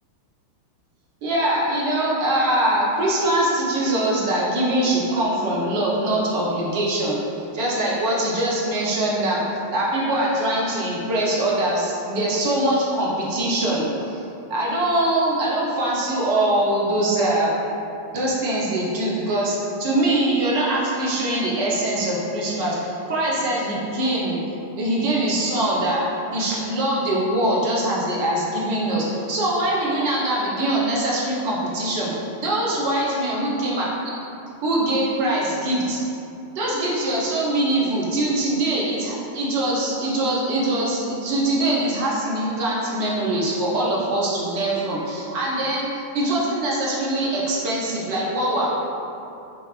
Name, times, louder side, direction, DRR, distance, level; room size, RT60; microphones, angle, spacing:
voice 1, 1.2-9.4 9.7-14.2 14.5-17.5 18.1-24.4 24.8-26.0 26.3-33.8 34.6-36.0 36.5-48.8, right 1 dB, 45° right, -5 dB, 0.7 m, -23 dB
3.2 x 2.9 x 2.4 m, 2.7 s
figure-of-eight pair, 90°, 0 cm